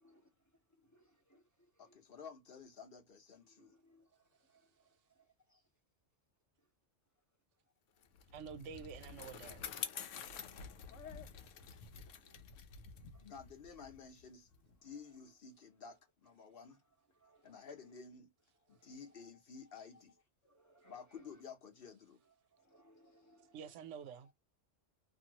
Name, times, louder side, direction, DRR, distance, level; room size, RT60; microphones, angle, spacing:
voice 1, 0.0-2.0 3.3-5.7 6.6-6.7 7.1-7.2 7.5-8.0 10.9-13.3 14.5-15.4 15.8-16.0 16.4-18.0 18.5-20.0 20.4-21.4 21.8-24.3, equal, 15° left, 0.8 m, -70 dB
voice 2, 1.8-3.7 13.2-16.8 17.4-18.3 18.7-20.1 20.8-22.2, left 6 dB, 55° left, 1.0 m, -53 dB
Bicycle, 8.0-14.7, left 7 dB, 85° left, 1.0 m, -48 dB
voice 3, 8.3-9.7 23.5-24.3, right 7 dB, 75° right, 0.9 m, -48 dB
2.8 x 2.6 x 2.8 m
omnidirectional pair, 1.3 m